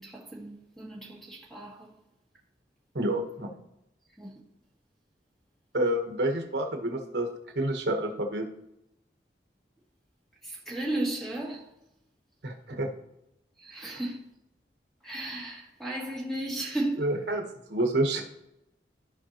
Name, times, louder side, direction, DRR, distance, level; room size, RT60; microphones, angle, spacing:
voice 1, 0.0-2.0 4.2-4.4 10.4-11.7 13.6-14.2 15.0-17.1, right 1 dB, ahead, 1.7 m, -35 dB
voice 2, 2.9-3.5 5.7-7.3 7.5-8.4 12.4-12.9 17.0-18.2, right 1 dB, 75° right, 1.2 m, -28 dB
14.0 x 4.9 x 2.9 m
head